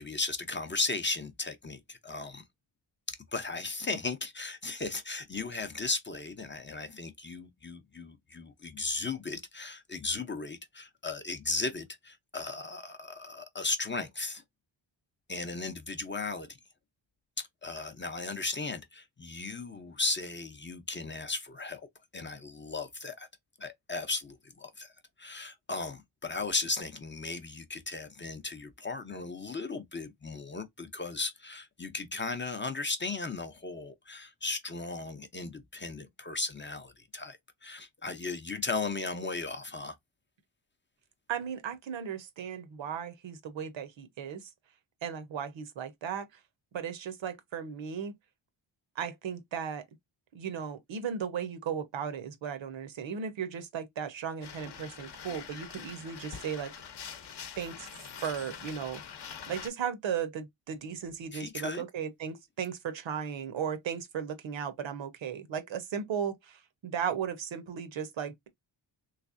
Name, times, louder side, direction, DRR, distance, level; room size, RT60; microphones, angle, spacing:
voice 1, 0.0-2.4 3.1-14.4 15.3-16.6 17.4-21.8 22.1-23.3 23.6-24.9 25.2-40.0 61.3-61.8, left 3 dB, 25° left, 0.5 m, -36 dB
voice 2, 41.3-44.5 45.0-46.3 46.7-48.1 49.0-49.8 50.3-56.7 57.6-57.9 58.2-59.0 59.5-68.5, right 7 dB, 70° right, 0.9 m, -36 dB
sound 1, 54.4-59.7, left 7 dB, 55° left, 0.8 m, -45 dB
3.4 x 3.2 x 2.5 m
wide cardioid pair, 140°, 47 cm